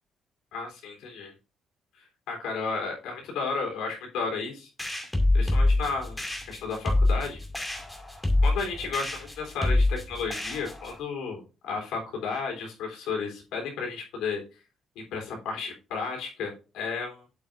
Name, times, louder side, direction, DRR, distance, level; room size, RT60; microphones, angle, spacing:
voice 1, 0.5-1.3 2.0-4.7 5.3-7.4 8.4-14.4 15.0-17.2, left 4 dB, 90° left, 1 dB, 3.5 m, -33 dB
sound 1, 4.8-11.0, left 2 dB, 10° left, 2.4 m, -26 dB
8.0 x 7.9 x 2.6 m, 0.31 s
cardioid pair, 90°, 0 cm